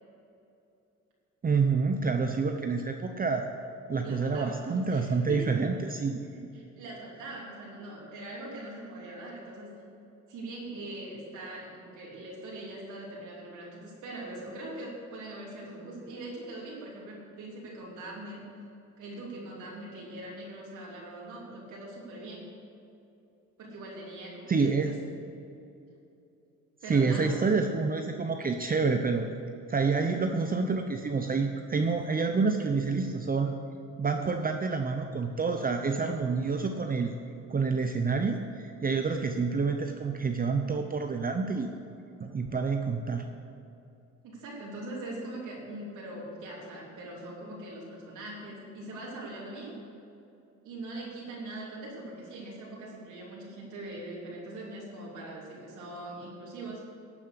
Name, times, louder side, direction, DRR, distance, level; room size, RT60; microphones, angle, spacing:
voice 1, 1.4-3.5 3.9-6.2 24.5-25.0 26.9-29.3 29.7-33.5 34.0-37.1 37.5-41.7 42.2-43.3, right 4 dB, 30° right, 5 dB, 0.7 m, -28 dB
voice 2, 4.0-4.6 4.9-5.6 6.3-9.7 10.3-18.4 19.0-22.5 23.6-24.9 26.8-27.4 44.2-49.7 50.6-56.9, right 1 dB, 85° right, -4 dB, 3.3 m, -42 dB
12.5 x 7.3 x 6.7 m, 2.7 s
cardioid pair, 90°, 30 cm